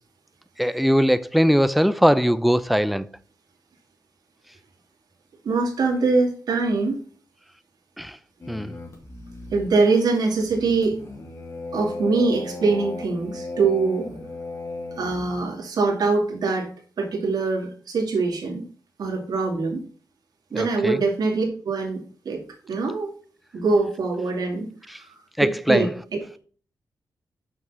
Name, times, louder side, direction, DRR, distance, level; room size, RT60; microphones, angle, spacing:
voice 1, 0.6-3.1 8.0-8.2 8.5-8.7 20.5-21.0 25.4-25.9, equal, ahead, 0.5 m, -20 dB
voice 2, 5.4-7.0 9.5-11.0 11.7-14.1 14.9-16.7 17.0-18.6 19.0-19.8 20.5-22.4 22.7-23.1 23.5-24.7 25.4-25.9, right 3 dB, 75° right, 2.4 m, -23 dB
sound 1, 8.4-15.4, left 2 dB, 45° left, 3.0 m, -36 dB
6.3 x 5.9 x 6.8 m
wide cardioid pair, 100°, 7 cm